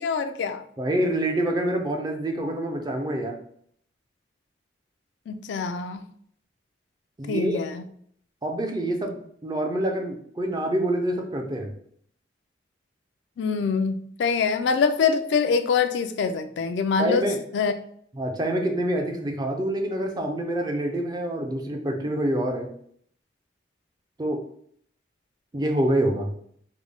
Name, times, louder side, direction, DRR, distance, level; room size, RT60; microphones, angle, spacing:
voice 1, 0.0-0.6 5.3-6.0 7.3-7.8 13.4-13.9 14.2-17.2 17.5-17.7, left 5 dB, 75° left, 0.3 m, -24 dB
voice 2, 0.8-3.4 7.2-7.6 8.4-11.7 17.0-17.4 18.1-22.7 24.2-24.4 25.5-26.3, right 1 dB, 20° right, 0.4 m, -26 dB
3.7 x 2.1 x 3.3 m
head